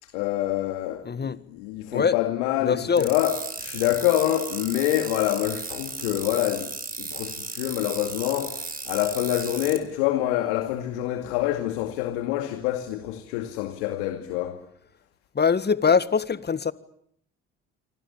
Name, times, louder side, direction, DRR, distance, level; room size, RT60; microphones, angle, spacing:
voice 1, 0.0-14.6, left 14 dB, 80° left, 2.3 m, -26 dB
voice 2, 1.0-1.4 1.9-2.2 2.6-3.1 15.3-16.7, left 6 dB, 30° left, 1.8 m, -22 dB
sound 1, 3.0-9.8, right 3 dB, 25° right, 5.1 m, -35 dB
28.5 x 25.0 x 7.2 m
hypercardioid pair, 60°, 33 cm